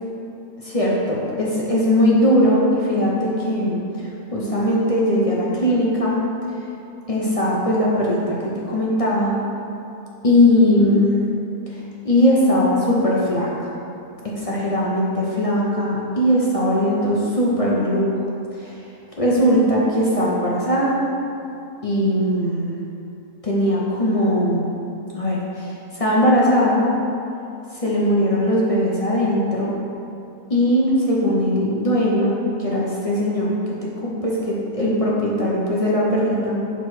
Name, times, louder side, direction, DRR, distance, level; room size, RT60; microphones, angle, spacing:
voice 1, 0.6-6.2 7.1-8.4 8.7-9.4 10.2-11.2 11.7-13.7 14.4-18.1 18.6-18.8 19.2-21.1 21.8-22.7 23.4-24.8 25.1-26.9 27.7-29.7 30.5-33.5 34.0-36.6, left 1 dB, 35° left, -5 dB, 0.6 m, -19 dB
6.4 x 4.0 x 4.8 m, 2.8 s
omnidirectional pair, 1.6 m